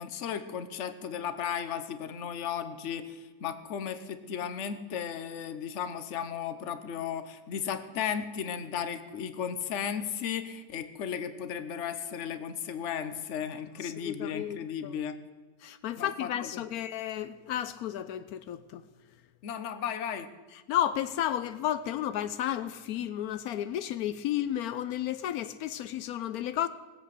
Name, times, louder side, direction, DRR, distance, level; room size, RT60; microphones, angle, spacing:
voice 1, 0.0-15.2 16.0-16.6 19.4-20.3, left 8 dB, 55° left, 1.1 m, -35 dB
voice 2, 13.8-14.9 15.6-18.8 20.7-26.7, left 11 dB, 85° left, 1.1 m, -32 dB
19.0 x 7.8 x 6.6 m
omnidirectional pair, 1.5 m